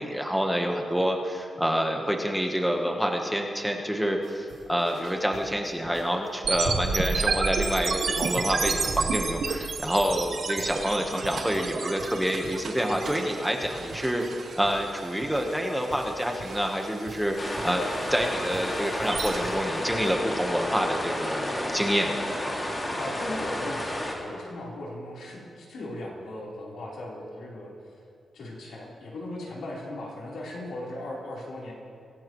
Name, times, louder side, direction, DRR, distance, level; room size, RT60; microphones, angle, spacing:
voice 1, 0.0-17.4 17.6-22.3, equal, ahead, 2 dB, 1.2 m, -27 dB
sound 1, 4.2-20.2, right 3 dB, 80° right, 2.9 m, -46 dB
sound 2, 6.4-19.4, right 4 dB, 60° right, 1.7 m, -31 dB
sound 3, 17.4-24.1, left 1 dB, 20° left, 2.4 m, -31 dB
voice 2, 23.0-27.7 28.3-31.7, left 1 dB, 90° left, -5 dB, 3.9 m, -38 dB
24.0 x 17.0 x 3.1 m, 2.4 s
wide cardioid pair, 165°, 0 cm